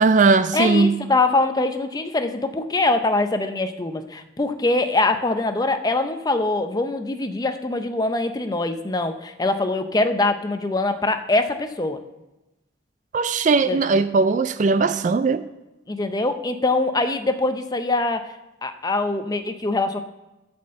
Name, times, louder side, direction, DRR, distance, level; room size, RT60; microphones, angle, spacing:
voice 1, 0.0-0.9 13.1-15.4, right 4 dB, 40° right, 13 dB, 0.3 m, -18 dB
voice 2, 0.5-12.0 13.7-13.8 15.9-18.3 18.6-20.0, left 2 dB, 20° left, 8 dB, 0.5 m, -23 dB
12.0 x 4.4 x 7.5 m, 1.0 s
head